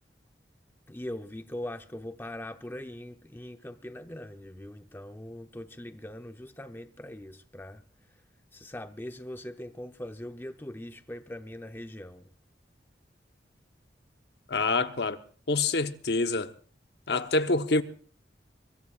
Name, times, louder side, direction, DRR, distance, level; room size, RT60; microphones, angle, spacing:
voice 1, 0.9-7.8 8.5-12.3, left 1 dB, 15° left, 0.7 m, -41 dB
voice 2, 14.5-15.2 15.5-16.5 17.1-17.8, left 3 dB, 70° left, 1.0 m, -26 dB
24.0 x 23.0 x 2.4 m
head